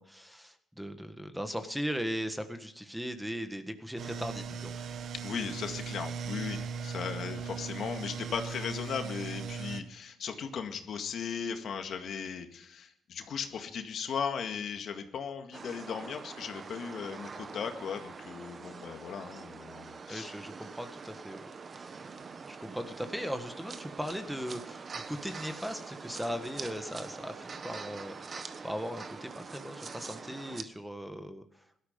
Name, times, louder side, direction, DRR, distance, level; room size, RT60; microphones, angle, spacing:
voice 1, 0.0-4.9 20.1-21.4 21.7-21.9 22.5-28.4 28.6-31.4, equal, 5° right, 8 dB, 1.6 m, -38 dB
sound 1, 4.0-9.8, right 6 dB, 65° right, 1.2 m, -38 dB
voice 2, 5.2-20.3, left 6 dB, 65° left, 6 dB, 1.9 m, -37 dB
sound 2, 15.5-30.6, right 4 dB, 40° right, 1.2 m, -44 dB
17.0 x 12.5 x 5.3 m, 0.71 s
cardioid pair, 90°, 0 cm